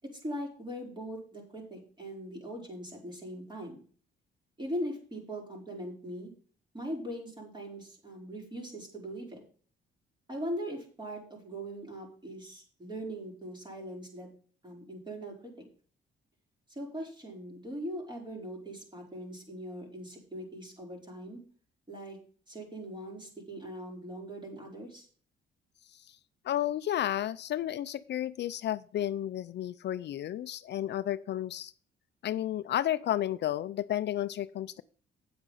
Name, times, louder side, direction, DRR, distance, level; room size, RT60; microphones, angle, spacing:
voice 1, 0.0-3.8 4.6-6.3 6.7-9.4 10.3-14.3 14.6-15.6 16.7-21.4 21.9-22.2 22.5-25.1, equal, 25° right, 0 dB, 5.0 m, -40 dB
voice 2, 26.4-31.7 32.2-34.8, left 12 dB, 60° left, 15 dB, 0.5 m, -32 dB
8.9 x 7.9 x 5.6 m, 0.43 s
cardioid pair, 90°, 20 cm